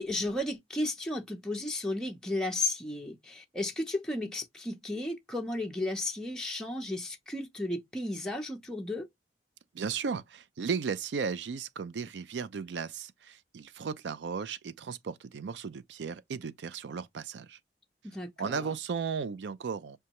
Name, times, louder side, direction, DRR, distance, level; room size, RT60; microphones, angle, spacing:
voice 1, 0.0-9.1 18.0-18.7, left 2 dB, 5° left, 0.5 m, -34 dB
voice 2, 9.7-17.6 18.4-20.0, right 5 dB, 80° right, 0.4 m, -35 dB
6.3 x 2.3 x 2.9 m
head